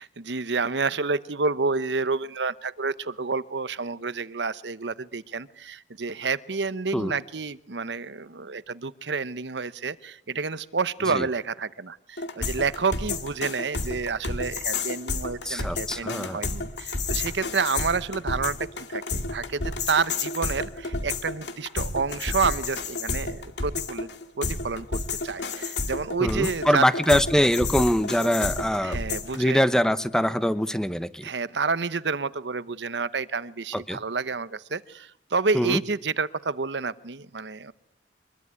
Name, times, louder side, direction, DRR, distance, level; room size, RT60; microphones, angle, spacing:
voice 1, 0.0-24.1 24.4-27.2 28.8-29.6 31.2-37.7, right 4 dB, 85° right, 15 dB, 0.9 m, -29 dB
sound 1, 12.2-29.4, left 3 dB, 85° left, 2.3 m, -31 dB
voice 2, 15.5-16.4 26.2-29.0 29.3-31.3 33.7-34.0 35.5-35.8, equal, 5° left, 12 dB, 1.0 m, -23 dB
24.0 x 21.5 x 9.7 m, 0.78 s
head